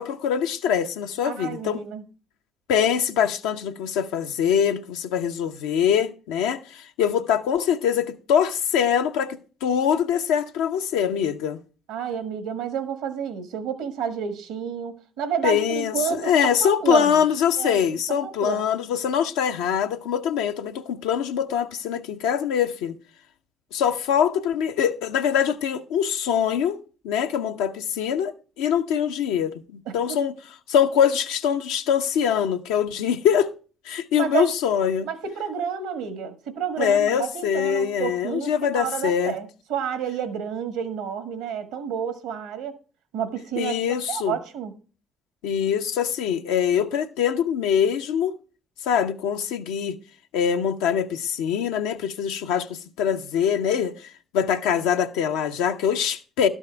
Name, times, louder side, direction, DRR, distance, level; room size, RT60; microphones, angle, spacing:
voice 1, 0.0-1.8 2.7-11.6 15.4-23.0 23.7-26.8 27.0-30.3 30.7-33.5 33.9-35.1 36.8-39.3 43.6-44.4 45.4-48.3 48.9-50.0 50.3-53.9 54.3-56.5, left 8 dB, 80° left, 0.7 m, -23 dB
voice 2, 1.2-2.0 11.9-17.2 17.6-17.8 18.2-18.6 29.9-30.2 34.2-34.5 35.0-42.8 43.1-43.8 44.1-44.7, right 8 dB, 80° right, 1.3 m, -30 dB
12.0 x 5.6 x 4.5 m
hypercardioid pair, 60°, 0 cm